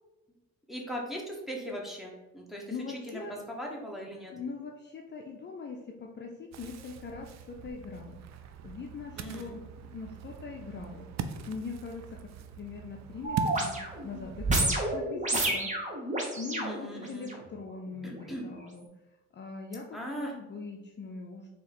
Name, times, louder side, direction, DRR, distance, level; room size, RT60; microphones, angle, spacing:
voice 1, 0.7-4.3 9.2-9.6 16.6-17.3 18.0-18.4 19.9-20.3, equal, ahead, -2 dB, 1.1 m, -39 dB
voice 2, 2.7-3.4 4.3-11.1 11.5-13.8 14.0-18.9 19.3-21.5, left 4 dB, 35° left, 1 dB, 0.5 m, -42 dB
Ocean, 6.5-14.7, right 6 dB, 65° right, 0.5 m, -42 dB
sound 1, 13.2-17.4 18.0-18.1, right 2 dB, 25° right, 1.1 m, -30 dB
3.8 x 2.9 x 4.2 m, 1.0 s
cardioid pair, 90°, 30 cm